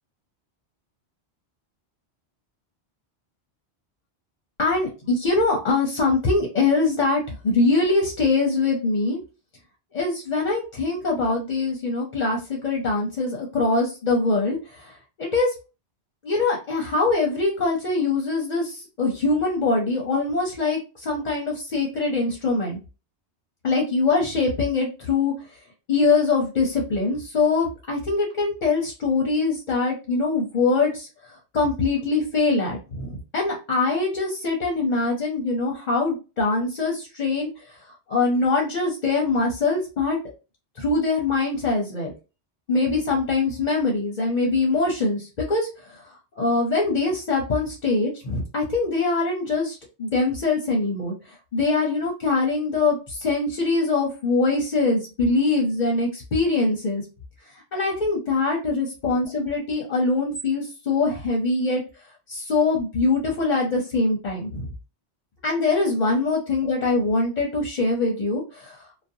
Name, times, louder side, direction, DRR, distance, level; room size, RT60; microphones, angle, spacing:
voice 1, 4.6-9.2 9.9-14.9 15.2-15.5 16.2-22.8 23.6-25.3 25.9-37.5 38.1-40.2 40.8-42.1 42.7-45.7 46.4-51.1 51.5-57.0 57.7-61.8 62.3-64.7 65.4-69.0, left 3 dB, 50° left, -1 dB, 0.6 m, -23 dB
2.5 x 2.1 x 2.6 m, 0.31 s
omnidirectional pair, 1.1 m